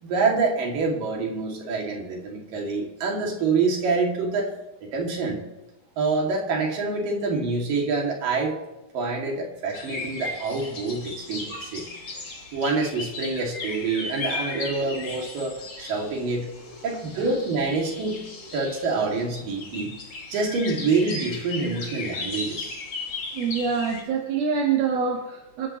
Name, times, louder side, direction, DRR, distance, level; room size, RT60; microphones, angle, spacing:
voice 1, 0.0-4.5 4.8-5.4 6.0-8.6 8.9-11.9 12.5-16.5 16.8-18.2 18.5-19.9 20.3-22.8, right 4 dB, 65° right, -1 dB, 4.3 m, -26 dB
sound 1, 9.7-24.0, left 3 dB, 35° left, 2.2 m, -36 dB
voice 2, 16.7-17.2 18.1-18.2 23.3-25.7, right 6 dB, 80° right, -2 dB, 3.6 m, -27 dB
27.5 x 13.5 x 3.2 m, 0.99 s
omnidirectional pair, 4.3 m